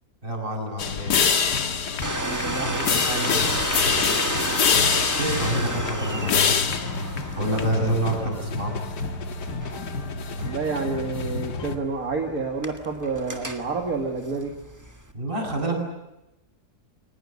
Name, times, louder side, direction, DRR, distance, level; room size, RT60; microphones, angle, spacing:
voice 1, 0.2-1.2 3.7-4.6 5.2-6.6 7.4-8.8 15.1-15.8, right 1 dB, 30° right, 1 dB, 7.0 m, -28 dB
sound 1, 0.8-11.8, left 6 dB, 80° left, 2.0 m, -26 dB
Domestic sounds home sounds, 2.0-15.1, right 1 dB, 10° right, 1.6 m, -33 dB
voice 2, 2.1-3.5 10.4-14.5, right 3 dB, 60° right, 2 dB, 2.5 m, -29 dB
23.5 x 20.0 x 9.7 m, 0.91 s
omnidirectional pair, 1.8 m